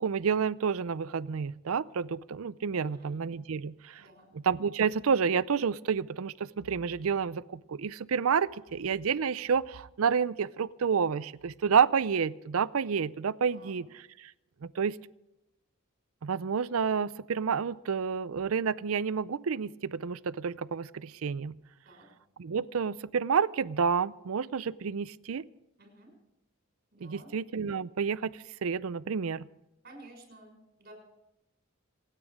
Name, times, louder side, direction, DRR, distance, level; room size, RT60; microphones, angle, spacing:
voice 1, 0.0-4.0 4.4-14.3 14.6-15.0 16.2-21.5 22.4-25.4 27.0-29.5, right 6 dB, 80° right, 18 dB, 0.5 m, -29 dB
voice 2, 2.8-3.2 4.0-4.3 13.5-13.8 21.8-22.1 25.8-26.1 26.9-27.3 29.8-30.9, right 1 dB, 45° right, 2 dB, 6.3 m, -53 dB
27.5 x 9.2 x 4.9 m, 0.92 s
head